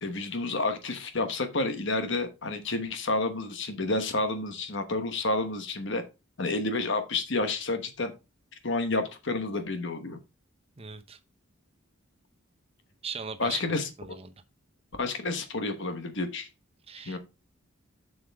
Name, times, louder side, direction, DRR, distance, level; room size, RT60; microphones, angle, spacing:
voice 1, 0.0-6.0 6.4-8.1 8.6-10.2 13.4-13.9 15.0-16.5 17.0-17.2, left 2 dB, 55° left, 1.1 m, -30 dB
voice 2, 10.8-11.2 13.0-14.3 16.9-17.2, right 5 dB, 25° right, 0.8 m, -39 dB
7.6 x 6.5 x 3.5 m
head